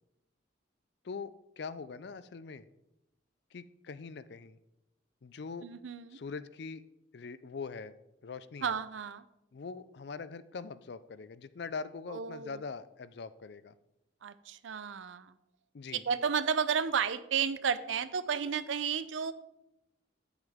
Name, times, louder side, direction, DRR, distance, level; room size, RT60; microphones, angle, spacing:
voice 1, 1.0-2.6 3.5-4.6 5.2-5.7 6.1-6.8 7.1-7.9 8.2-8.8 9.5-13.8 15.7-16.0, left 4 dB, 60° left, 15 dB, 0.4 m, -42 dB
voice 2, 5.6-6.2 8.6-9.2 12.1-12.6 14.2-15.3 15.9-19.3, right 7 dB, 80° right, 14 dB, 0.5 m, -32 dB
9.3 x 8.0 x 3.6 m, 0.88 s
head